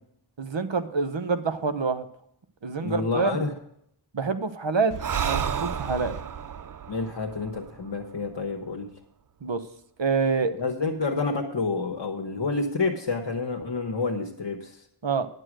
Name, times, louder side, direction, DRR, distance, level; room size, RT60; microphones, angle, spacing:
voice 1, 0.4-2.0 2.6-3.4 4.1-4.9 5.2-6.2 9.4-9.6 10.0-10.5 15.0-15.3, right 4 dB, 60° right, 10 dB, 1.1 m, -26 dB
voice 2, 2.8-3.5 6.9-8.9 10.6-14.8, left 3 dB, 60° left, 2 dB, 1.3 m, -29 dB
Breathing, 4.9-8.5, right 7 dB, 40° right, 0.5 m, -31 dB
11.0 x 6.8 x 6.2 m, 0.70 s
wide cardioid pair, 70°, 49 cm